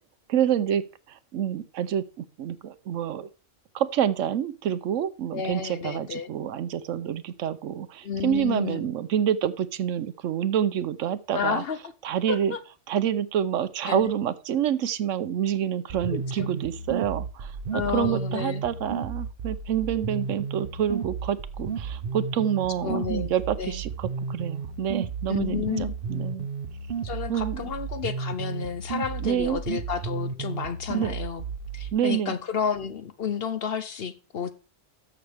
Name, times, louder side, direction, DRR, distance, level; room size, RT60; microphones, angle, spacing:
voice 1, 0.3-0.8 1.1-2.0 2.4-3.3 3.7-11.6 12.0-12.5 12.9-26.5 27.3-27.7 29.2-29.6 30.9-31.1 31.9-32.3, right 9 dB, 75° right, 14 dB, 1.0 m, -27 dB
voice 2, 5.3-6.3 8.0-8.9 11.3-11.8 12.3-12.6 13.8-14.1 16.1-16.5 17.7-18.6 22.8-23.3 23.6-23.8 25.3-25.9 27.0-31.4 31.7-34.5, left 7 dB, 55° left, 12 dB, 0.8 m, -31 dB
sound 1, 15.9-31.9, right 5 dB, 50° right, 1.0 m, -33 dB
13.0 x 6.4 x 3.4 m, 0.33 s
omnidirectional pair, 1.3 m